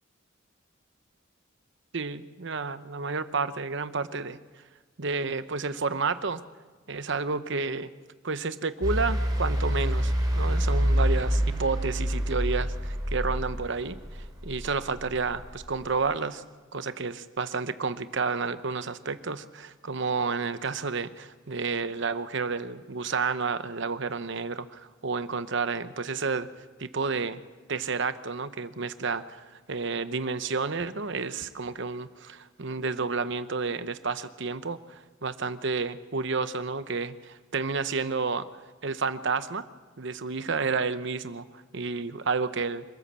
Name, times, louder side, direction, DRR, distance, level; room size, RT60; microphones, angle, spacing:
voice 1, 1.9-4.4 5.0-6.4 6.9-7.9 8.2-16.4 16.7-26.5 26.8-27.4 27.7-38.5 38.8-39.6 40.0-42.8, right 4 dB, 60° right, 12 dB, 0.9 m, -30 dB
sound 1, 8.8-15.9, equal, 20° right, 4.0 m, -27 dB
26.0 x 14.0 x 7.5 m, 1.4 s
head